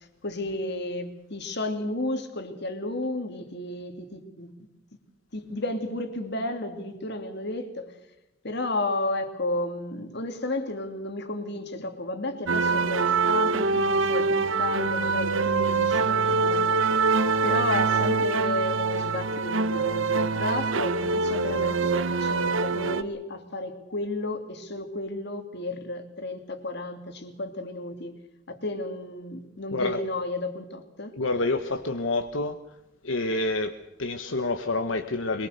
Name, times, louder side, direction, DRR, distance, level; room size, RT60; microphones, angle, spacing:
voice 1, 0.2-4.5 5.3-7.9 8.4-16.7 17.4-28.2 28.5-31.1, left 2 dB, 60° left, 7 dB, 2.9 m, -32 dB
sound 1, 12.5-23.0, right 4 dB, 85° right, 1.2 m, -24 dB
voice 2, 31.1-32.5 33.0-35.5, left 2 dB, 75° left, 7 dB, 1.3 m, -28 dB
23.5 x 22.5 x 6.7 m, 0.94 s
head